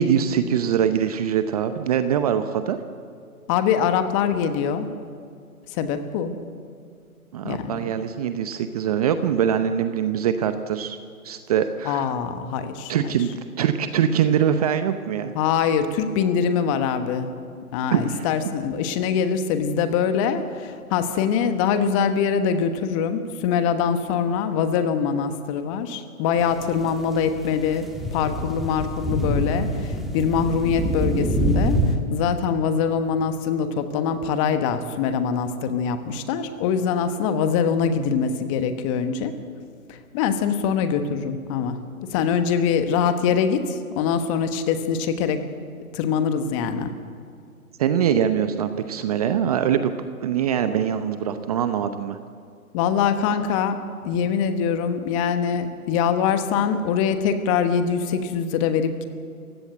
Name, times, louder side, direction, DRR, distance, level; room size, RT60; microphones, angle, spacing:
voice 1, 0.0-2.8 7.3-11.0 11.2-12.1 12.9-15.3 17.9-18.3 47.8-49.9 50.2-52.2, right 8 dB, 25° right, 10 dB, 0.8 m, -23 dB
voice 2, 3.5-4.9 5.7-6.3 7.4-7.9 11.8-13.2 15.3-17.3 17.7-31.8 32.1-39.3 39.9-41.8 42.1-45.4 45.9-46.9 52.7-53.8 54.0-59.1, left 7 dB, 20° left, 9 dB, 1.3 m, -23 dB
sound 1, 26.4-32.0, equal, ahead, 1.5 m, -26 dB
28.0 x 16.5 x 8.0 m, 2.3 s
figure-of-eight pair, 135°, 44 cm